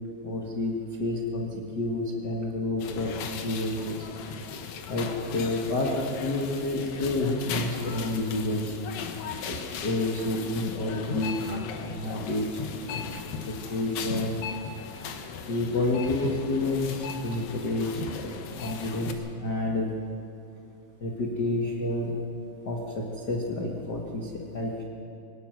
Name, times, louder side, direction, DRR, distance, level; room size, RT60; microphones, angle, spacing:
voice 1, 0.2-4.1 4.9-8.7 9.4-12.6 12.9-14.4 15.5-18.3 18.6-19.1 19.4-19.9 21.0-22.1 22.6-24.8, left 2 dB, 85° left, -1 dB, 0.9 m, -29 dB
sound 1, 2.8-19.1, left 6 dB, 65° left, 2.6 m, -37 dB
23.5 x 19.5 x 6.1 m, 2.7 s
omnidirectional pair, 4.9 m